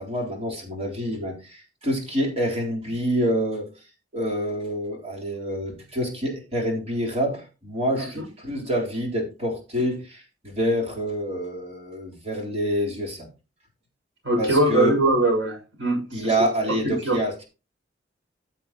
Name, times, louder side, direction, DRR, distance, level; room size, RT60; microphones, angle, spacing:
voice 1, 0.0-3.7 4.1-13.3 14.4-14.9 15.9-17.4, equal, 35° right, -1 dB, 3.9 m, -27 dB
voice 2, 14.2-16.3 16.8-17.2, right 1 dB, 90° right, 0 dB, 6.2 m, -22 dB
14.5 x 7.4 x 3.0 m, 0.31 s
head